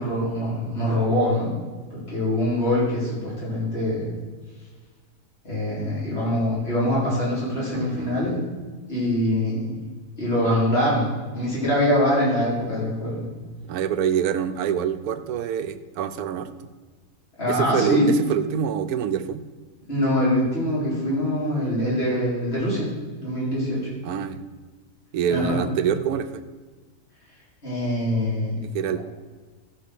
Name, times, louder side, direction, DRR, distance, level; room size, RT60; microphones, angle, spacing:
voice 1, 0.0-1.5 1.9-4.1 5.4-8.4 8.9-9.8 10.2-13.3 17.4-18.1 19.9-22.9 23.2-23.8 25.3-25.6 27.6-28.6, left 1 dB, 40° left, -7 dB, 4.5 m, -24 dB
voice 2, 7.7-8.2 13.6-16.7 17.5-19.4 24.0-24.4 25.1-26.4 28.6-29.0, right 8 dB, 85° right, 10 dB, 1.2 m, -26 dB
13.0 x 5.5 x 6.7 m, 1.4 s
omnidirectional pair, 1.5 m